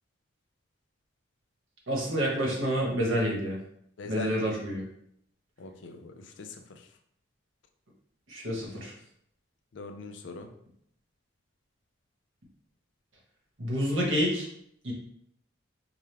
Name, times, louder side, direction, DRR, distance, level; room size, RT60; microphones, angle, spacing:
voice 1, 1.9-3.6 4.0-4.8 8.3-8.9 13.6-14.5 14.8-14.9, equal, 75° right, -3 dB, 1.2 m, -28 dB
voice 2, 4.0-4.4 5.6-6.6 9.7-10.5, left 4 dB, 60° left, 5 dB, 0.5 m, -40 dB
4.9 x 2.2 x 3.3 m, 0.71 s
head